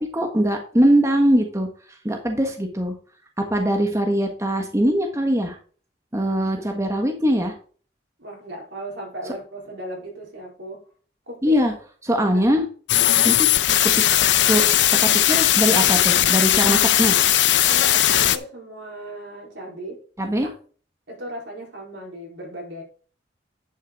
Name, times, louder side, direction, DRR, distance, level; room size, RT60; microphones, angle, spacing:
voice 1, 0.1-1.7 2.0-2.9 3.4-5.6 6.1-7.5 11.4-11.7 12.0-12.7 13.2-13.5 14.5-14.6 14.9-17.2 20.2-20.5, equal, 15° right, 1.3 m, -21 dB
voice 2, 8.2-10.8 11.3-11.6 12.3-12.4 13.0-13.4 17.7-20.0 21.1-22.8, right 1 dB, 75° right, 4.3 m, -36 dB
sound 1, 12.9-18.4, left 12 dB, 75° left, 0.6 m, -18 dB
10.5 x 6.4 x 4.0 m
head